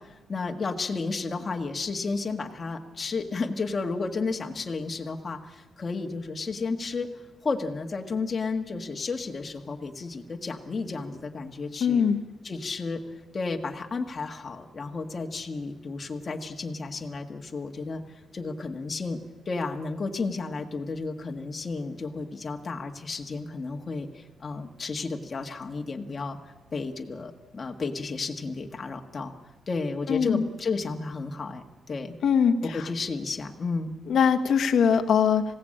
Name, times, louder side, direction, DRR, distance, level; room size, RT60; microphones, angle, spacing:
voice 1, 0.0-12.0 12.4-18.0 18.3-19.2 19.4-29.3 29.7-32.2 32.6-33.9, left 4 dB, 30° left, 2 dB, 1.7 m, -32 dB
voice 2, 11.8-12.2 30.1-30.5 32.2-32.9 34.1-35.4, left 7 dB, 70° left, 6 dB, 1.4 m, -22 dB
27.0 x 17.0 x 8.8 m, 1.2 s
wide cardioid pair, 165°, 0 cm